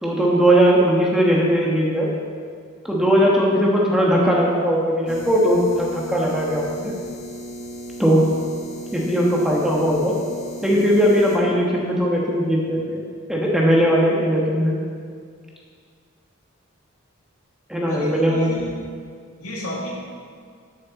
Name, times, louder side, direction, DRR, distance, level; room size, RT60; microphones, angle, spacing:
voice 1, 0.0-2.1 2.8-6.9 8.0-8.2 8.9-10.2 10.6-13.0 13.3-14.8 17.7-18.6, equal, ahead, -4 dB, 1.3 m, -19 dB
sound 1, 5.1-11.4, equal, 50° left, 1.4 m, -36 dB
voice 2, 17.9-18.8 19.4-19.9, equal, 85° left, -3 dB, 2.3 m, -32 dB
13.5 x 6.4 x 4.1 m, 2.1 s
head